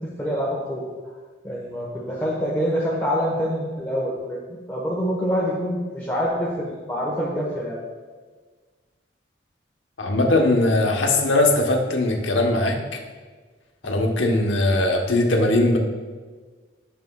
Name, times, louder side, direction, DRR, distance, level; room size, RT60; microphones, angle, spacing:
voice 1, 0.2-0.8 1.4-4.4 4.7-7.8 13.8-13.9, equal, 10° left, -6 dB, 1.0 m, -26 dB
voice 2, 10.0-12.8 13.8-15.8, left 2 dB, 80° left, 2 dB, 1.0 m, -20 dB
11.0 x 6.8 x 2.3 m, 1.4 s
head